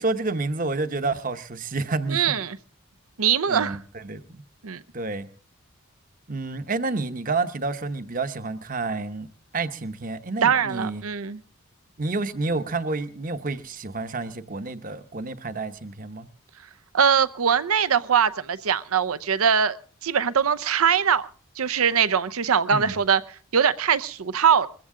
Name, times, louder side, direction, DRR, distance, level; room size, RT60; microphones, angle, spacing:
voice 1, 0.0-2.4 3.5-4.4 4.9-5.3 6.3-9.3 9.5-11.0 12.0-16.3 22.7-23.0, right 3 dB, 40° right, 0.9 m, -29 dB
voice 2, 2.1-2.6 3.2-3.8 4.6-4.8 10.4-11.4 16.9-19.8 20.0-21.3 21.6-23.2 23.5-24.7, right 7 dB, 85° right, 0.7 m, -22 dB
21.5 x 15.0 x 3.7 m
head